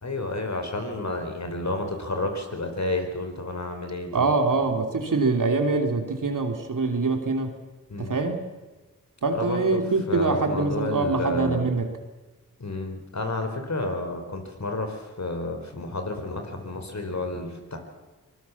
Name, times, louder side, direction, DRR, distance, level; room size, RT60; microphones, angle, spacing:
voice 1, 0.0-4.3 7.9-8.2 9.3-9.8 10.1-11.7 12.6-17.8, left 2 dB, 45° left, 5 dB, 4.4 m, -31 dB
voice 2, 4.1-7.6 8.0-8.5 9.2-11.9, right 3 dB, 55° right, 5 dB, 3.0 m, -24 dB
23.5 x 19.5 x 7.2 m, 1.2 s
cardioid pair, 45°, 37 cm